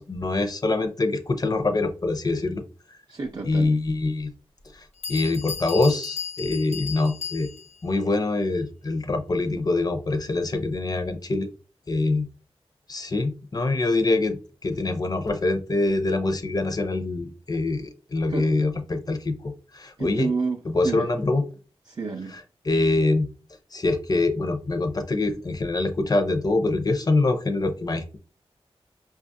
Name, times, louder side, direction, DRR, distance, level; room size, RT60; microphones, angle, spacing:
voice 1, 0.0-2.6 3.4-4.3 4.7-7.5 7.8-11.5 11.9-12.3 12.9-20.3 20.7-21.4 22.7-23.3 23.7-28.2, left 2 dB, 35° left, 0.6 m, -24 dB
voice 2, 3.1-3.7 18.3-18.5 20.0-21.1 21.9-22.4, right 4 dB, 40° right, 0.4 m, -29 dB
Bell, 3.9-4.0 4.7-4.8 5.0-7.8, left 7 dB, 75° left, 0.7 m, -35 dB
5.5 x 2.3 x 2.6 m
wide cardioid pair, 105°, 11 cm